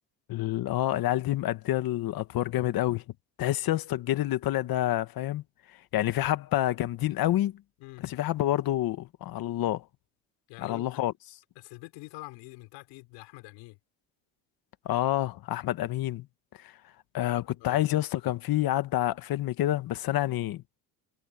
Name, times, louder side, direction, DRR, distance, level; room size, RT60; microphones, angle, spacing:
voice 1, 0.3-3.0 3.4-5.4 5.9-7.6 8.0-9.8 10.6-11.1 14.8-16.3 16.6-16.7 17.1-20.6, left 14 dB, 55° left, 1.6 m, -28 dB
voice 2, 10.5-11.1 11.6-13.8 17.6-17.8, left 24 dB, 80° left, 5.9 m, -45 dB
cardioid pair, 110°, 42 cm